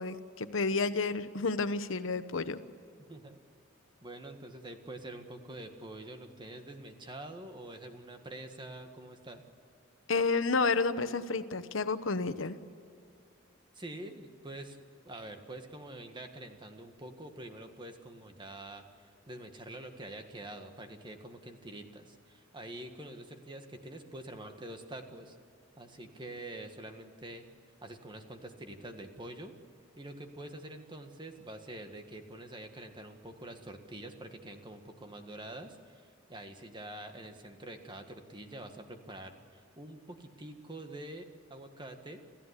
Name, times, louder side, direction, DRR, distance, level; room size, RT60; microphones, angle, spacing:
voice 1, 0.0-2.6 10.1-12.6, left 4 dB, 80° left, 11 dB, 1.0 m, -30 dB
voice 2, 3.1-3.4 4.0-9.4 13.7-14.8 15.0-18.8 19.3-25.3 25.8-27.4 27.8-29.5 30.0-42.2, right 1 dB, 25° right, 6 dB, 1.7 m, -46 dB
28.0 x 14.5 x 8.2 m, 2.4 s
head